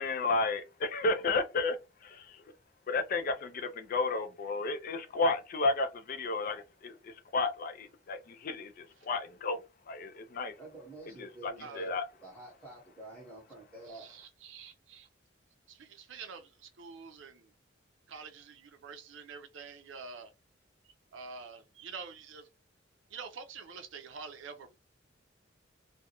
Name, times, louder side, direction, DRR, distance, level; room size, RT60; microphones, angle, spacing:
voice 1, 0.0-1.8 2.0-2.4 2.9-9.6 9.9-10.5 11.2-12.0, left 3 dB, 45° left, 0.3 m, -32 dB
voice 2, 10.6-11.9 12.2-14.0, right 2 dB, 10° left, 1.0 m, -49 dB
voice 3, 11.6-11.9 13.9-15.1 15.7-17.5 18.1-20.3 21.1-22.5 23.1-24.8, right 5 dB, 80° right, 0.5 m, -47 dB
2.3 x 2.0 x 2.8 m
head